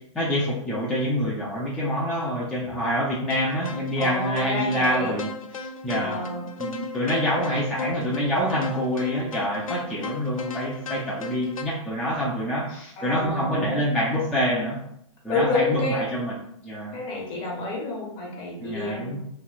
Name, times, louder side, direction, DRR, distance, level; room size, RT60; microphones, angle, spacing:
voice 1, 0.1-5.3 5.6-6.2 6.6-14.8 15.2-16.3 16.6-17.0 18.6-19.2, equal, 5° left, -8 dB, 0.5 m, -26 dB
sound 1, 3.3-11.6, left 3 dB, 90° left, 0.4 m, -36 dB
voice 2, 4.0-5.2 5.9-6.5 13.0-13.8 15.3-16.0 16.9-19.2, left 2 dB, 30° left, -2 dB, 1.0 m, -29 dB
3.1 x 2.5 x 2.4 m, 0.73 s
hypercardioid pair, 115°, 17 cm